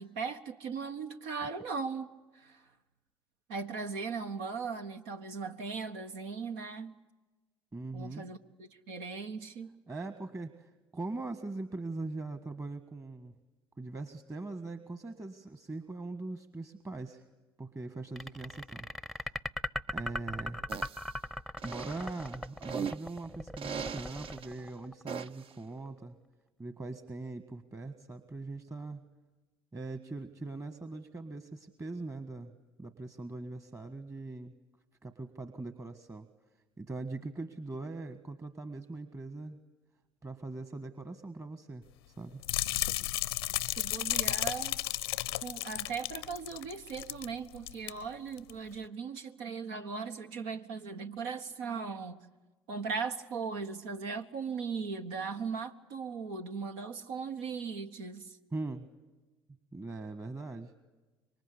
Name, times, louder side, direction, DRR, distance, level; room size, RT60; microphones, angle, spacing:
voice 1, 0.0-2.1 2.3-2.6 3.5-7.0 7.9-9.7 43.8-44.8 45.4-52.2 52.7-58.4, right 5 dB, 75° right, 6 dB, 1.5 m, -38 dB
voice 2, 7.7-8.2 9.9-13.3 13.8-17.2 17.6-18.9 19.1-19.3 19.9-20.6 21.6-26.2 26.6-29.0 29.7-32.5 32.8-34.5 35.0-36.3 36.8-39.6 40.2-42.4 58.5-58.9 59.7-60.7, right 3 dB, 25° right, 10 dB, 1.7 m, -41 dB
sound 1, 18.2-25.3, left 1 dB, ahead, 0.8 m, -38 dB
sound 2, 20.7-21.1 21.6-23.1 23.6-24.5 25.1-25.5, right 7 dB, 45° right, 0.8 m, -39 dB
sound 3, 42.4-47.3 47.5-47.9 48.4-48.5, left 15 dB, 85° left, 0.8 m, -33 dB
26.5 x 23.5 x 8.4 m, 1.2 s
hypercardioid pair, 65°, 12 cm